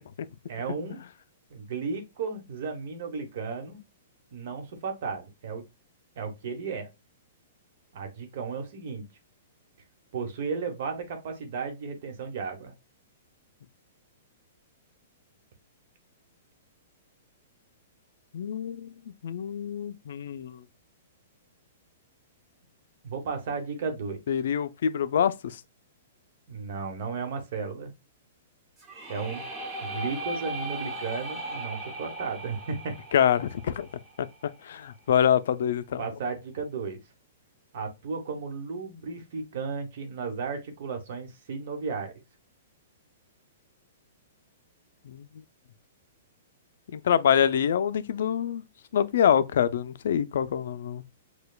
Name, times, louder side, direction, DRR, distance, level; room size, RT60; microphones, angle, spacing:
voice 1, 0.5-1.0 1.5-3.8 4.3-5.6 6.2-6.9 7.9-9.0 10.1-12.7 23.0-24.2 26.5-27.9 29.1-29.4 29.8-32.9 36.0-37.0 37.7-42.2, right 5 dB, 60° right, 1.0 m, -34 dB
voice 2, 18.3-18.9 19.2-20.6 24.3-25.6 33.1-33.9 34.6-36.0 45.1-45.2 46.9-48.6 48.9-51.0, left 9 dB, 70° left, 0.3 m, -25 dB
sound 1, 28.8-34.6, right 1 dB, 20° right, 0.9 m, -38 dB
6.6 x 2.2 x 2.3 m
hypercardioid pair, 145°, 0 cm